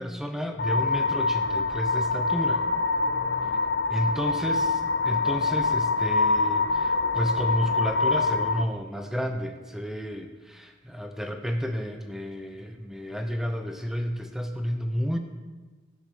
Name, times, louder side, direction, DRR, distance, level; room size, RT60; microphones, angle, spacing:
voice 1, 0.0-2.6 3.9-15.2, equal, ahead, 6 dB, 0.7 m, -31 dB
sound 1, 0.6-8.6, left 3 dB, 65° left, 0.8 m, -25 dB
15.0 x 6.8 x 6.4 m, 1.4 s
head